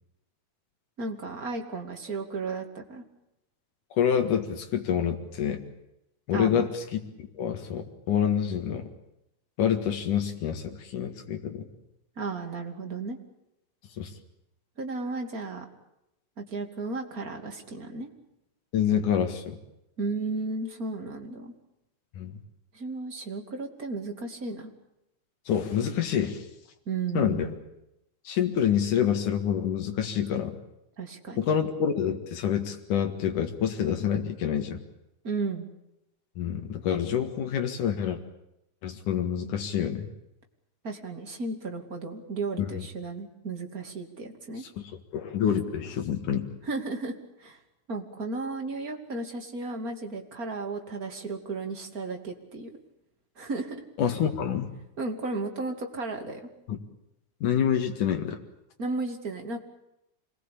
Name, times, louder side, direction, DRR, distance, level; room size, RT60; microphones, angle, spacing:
voice 1, 1.0-3.0 6.3-6.7 12.2-13.2 14.8-15.7 16.4-18.1 20.0-21.5 22.7-24.7 26.9-27.5 31.0-31.5 35.2-35.7 40.8-44.6 46.6-47.6 47.9-52.7 53.4-53.8 55.0-56.4 58.8-59.6, right 3 dB, 30° right, 3 dB, 2.9 m, -34 dB
voice 2, 4.0-5.6 6.3-8.9 9.6-11.7 14.0-14.1 18.7-19.6 22.2-22.4 25.5-26.4 27.2-27.5 28.3-30.6 31.4-34.8 36.4-38.2 38.8-40.1 42.6-42.8 45.1-46.5 54.0-54.7 56.7-56.8 57.4-58.4, left 8 dB, 85° left, 4 dB, 3.4 m, -27 dB
26.5 x 20.5 x 8.5 m, 0.86 s
omnidirectional pair, 3.5 m